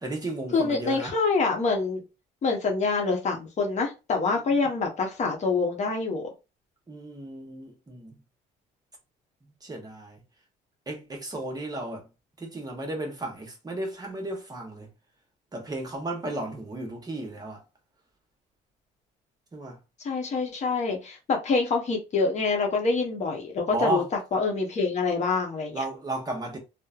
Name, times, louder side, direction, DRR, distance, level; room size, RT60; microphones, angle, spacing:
voice 1, 0.0-1.1 4.4-4.5 6.9-8.2 9.6-10.2 10.9-12.1 12.4-14.9 15.5-17.6 19.5-19.8 23.7-24.1 25.7-26.6, right 2 dB, 25° right, 0.9 m, -34 dB
voice 2, 0.5-2.0 2.4-6.3 20.0-24.0 24.3-25.8, left 4 dB, 45° left, 0.8 m, -26 dB
3.0 x 2.1 x 2.4 m
cardioid pair, 110°, 17 cm